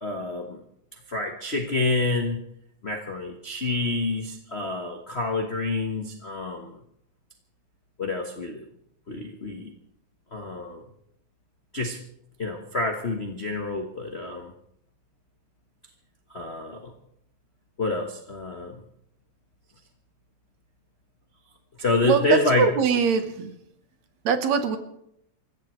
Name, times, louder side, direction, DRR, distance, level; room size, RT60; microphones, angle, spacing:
voice 1, 0.0-0.6 0.9-2.4 2.8-6.8 8.0-8.6 9.1-9.7 10.3-10.8 11.7-12.0 12.4-14.5 16.3-16.9 17.8-18.8 21.8-22.7, left 3 dB, 50° left, 2 dB, 0.7 m, -28 dB
voice 2, 22.0-23.6 24.2-24.8, right 6 dB, 70° right, 8 dB, 2.5 m, -22 dB
28.0 x 15.5 x 3.2 m, 0.74 s
omnidirectional pair, 3.4 m